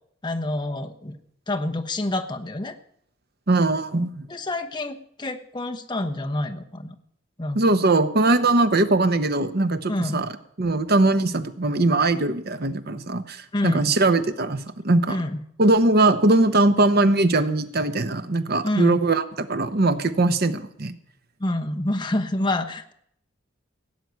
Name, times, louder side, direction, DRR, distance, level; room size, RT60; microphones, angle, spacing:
voice 1, 0.2-1.2 1.5-2.7 4.3-6.9 7.4-7.6 9.9-10.2 13.5-13.9 15.1-15.4 18.6-19.0 21.4-22.9, left 1 dB, 25° left, 5 dB, 1.1 m, -27 dB
voice 2, 3.5-4.2 7.5-10.3 10.6-15.2 15.6-21.0, right 2 dB, 55° right, 10 dB, 1.0 m, -21 dB
17.0 x 6.1 x 9.4 m, 0.70 s
head